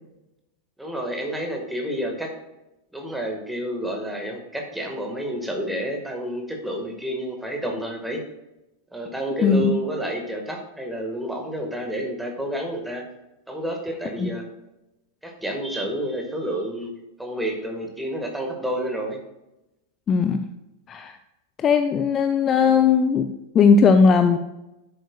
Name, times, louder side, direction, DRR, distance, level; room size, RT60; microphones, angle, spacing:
voice 1, 0.8-2.3 2.9-8.2 8.9-13.0 13.5-14.4 15.2-16.9 17.2-19.2, equal, 5° right, 2 dB, 1.7 m, -29 dB
voice 2, 9.4-9.7 14.2-14.3 20.1-20.4 20.9-21.2 21.6-23.3 23.5-24.4, left 5 dB, 25° left, 8 dB, 0.5 m, -18 dB
10.0 x 7.8 x 2.4 m, 0.94 s
figure-of-eight pair, 90°, 0 cm